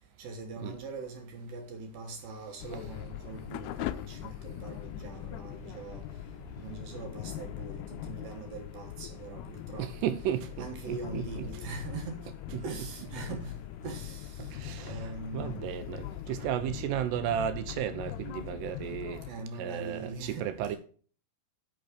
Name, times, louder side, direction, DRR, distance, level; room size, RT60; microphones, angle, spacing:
voice 1, 0.2-6.0 6.6-9.9 10.6-12.3 12.6-14.5 14.9-15.7 19.3-20.8, right 3 dB, 65° right, 2.6 m, -42 dB
sound 1, 2.6-19.3, left 14 dB, 85° left, 2.3 m, -41 dB
voice 2, 9.8-11.5 12.5-12.6 14.5-19.2 19.6-20.8, right 10 dB, 80° right, 2.6 m, -34 dB
8.9 x 6.1 x 5.0 m
omnidirectional pair, 5.0 m